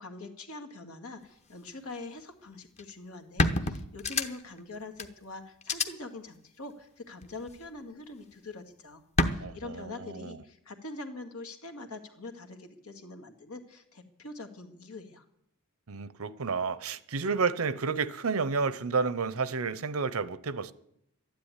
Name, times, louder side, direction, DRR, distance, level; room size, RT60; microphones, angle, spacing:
voice 1, 0.0-9.0 9.3-15.2, left 2 dB, 85° left, 2.0 m, -44 dB
sound 1, 2.8-2.9 3.4-4.6 5.0-5.1 5.6-5.9 7.2-7.7 9.2-9.3, left 2 dB, 30° left, 0.9 m, -27 dB
voice 2, 9.4-10.4 15.9-20.7, right 4 dB, 70° right, 0.8 m, -31 dB
12.5 x 10.5 x 9.8 m
head